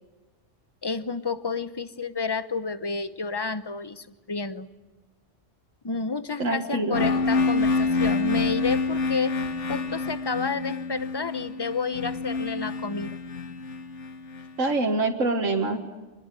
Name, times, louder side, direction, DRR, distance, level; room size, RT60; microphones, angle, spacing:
voice 1, 0.8-4.7 5.8-9.4 9.7-13.2, left 4 dB, 20° left, 13 dB, 0.9 m, -30 dB
voice 2, 6.4-7.1 14.6-15.9, right 2 dB, 90° right, 3 dB, 2.1 m, -25 dB
sound 1, 6.9-14.7, left 3 dB, 70° left, 1.8 m, -27 dB
26.5 x 21.0 x 9.2 m, 1.2 s
omnidirectional pair, 1.3 m